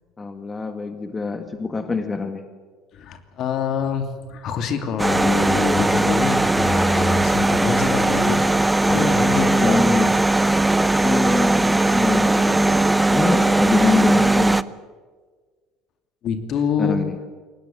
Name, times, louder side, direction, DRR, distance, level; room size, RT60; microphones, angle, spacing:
voice 1, 0.2-2.4 9.6-10.1 11.0-12.7 13.1-14.6 16.8-17.2, left 4 dB, 20° left, 8 dB, 1.8 m, -24 dB
voice 2, 2.9-8.4 8.9-10.0 16.2-17.0, left 6 dB, 50° left, 7 dB, 2.7 m, -25 dB
sound 1, 5.0-14.6, right 2 dB, 10° right, 0.7 m, -19 dB
23.0 x 19.0 x 7.5 m, 1.5 s
hypercardioid pair, 65°, 0 cm